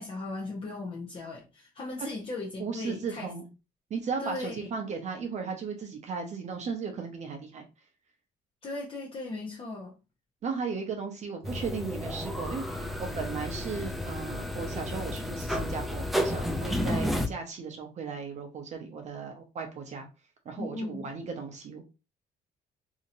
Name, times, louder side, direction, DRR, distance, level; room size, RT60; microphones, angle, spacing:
voice 1, 0.0-3.3 4.2-4.7 8.6-9.9 20.6-21.1, left 2 dB, 35° left, 0.8 m, -37 dB
voice 2, 2.6-3.5 3.9-7.6 10.4-20.1 20.5-21.8, right 5 dB, 45° right, 0.7 m, -36 dB
sound 1, 11.4-17.3, equal, ahead, 0.4 m, -32 dB
2.8 x 2.7 x 2.6 m
cardioid pair, 110°, 17 cm